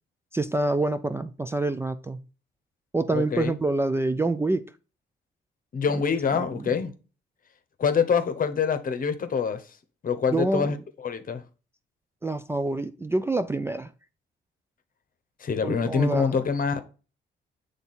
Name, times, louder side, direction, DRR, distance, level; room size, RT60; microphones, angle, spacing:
voice 1, 0.3-2.3 2.9-4.6 5.9-6.0 6.3-6.8 10.3-10.7 12.2-13.9 15.6-16.5, right 2 dB, 10° right, 0.3 m, -27 dB
voice 2, 3.1-3.5 5.7-6.9 7.8-9.6 10.0-10.8 11.0-11.4 15.4-16.8, left 6 dB, 45° left, 0.9 m, -25 dB
7.0 x 3.5 x 4.1 m
cardioid pair, 90°, 20 cm